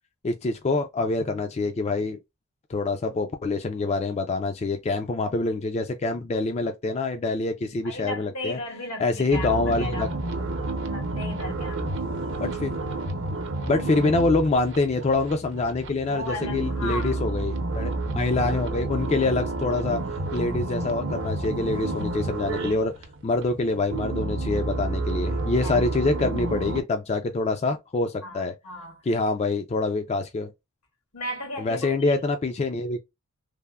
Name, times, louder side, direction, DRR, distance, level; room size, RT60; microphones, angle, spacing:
voice 1, 0.2-2.2 2.7-8.6 9.0-10.1 12.4-12.7 13.6-20.0 20.3-22.9 23.2-28.5 29.1-30.5 31.6-33.0, left 3 dB, 30° left, 0.3 m, -25 dB
voice 2, 7.8-10.2 10.8-11.9 16.1-17.2 25.6-25.8 28.2-29.0 31.1-32.2, left 1 dB, 90° left, 1.6 m, -35 dB
sound 1, 9.3-26.8, right 2 dB, 55° right, 0.7 m, -30 dB
3.3 x 2.1 x 2.2 m
head